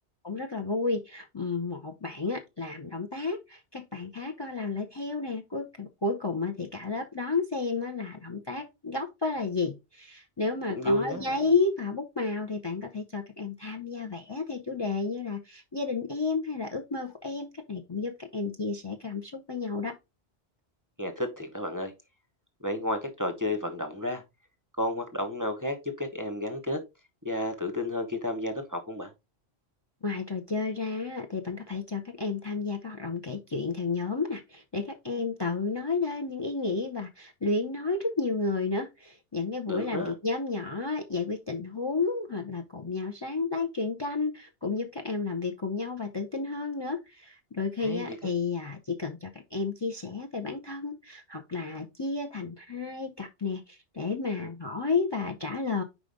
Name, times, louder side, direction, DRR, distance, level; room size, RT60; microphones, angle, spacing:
voice 1, 0.2-20.0 30.0-55.8, left 4 dB, 30° left, 0.6 m, -32 dB
voice 2, 10.7-11.3 21.0-21.9 22.6-24.2 24.8-26.8 27.2-29.1 39.7-40.1 47.8-48.3, left 1 dB, 20° right, 0.8 m, -31 dB
5.0 x 4.9 x 3.8 m
omnidirectional pair, 1.1 m